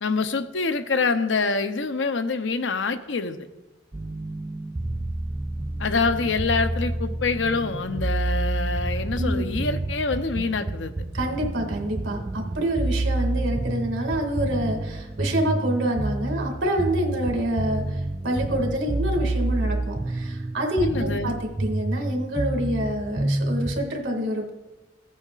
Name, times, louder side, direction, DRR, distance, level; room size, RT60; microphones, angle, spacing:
voice 1, 0.0-3.5 5.8-10.9 20.8-21.3, left 4 dB, 80° left, 9 dB, 0.7 m, -26 dB
sound 1, 3.9-23.9, right 2 dB, 15° right, 0.3 m, -28 dB
voice 2, 9.2-9.5 11.1-21.3 21.6-24.5, right 1 dB, 85° right, 2 dB, 2.1 m, -27 dB
15.5 x 8.4 x 2.5 m, 1.1 s
head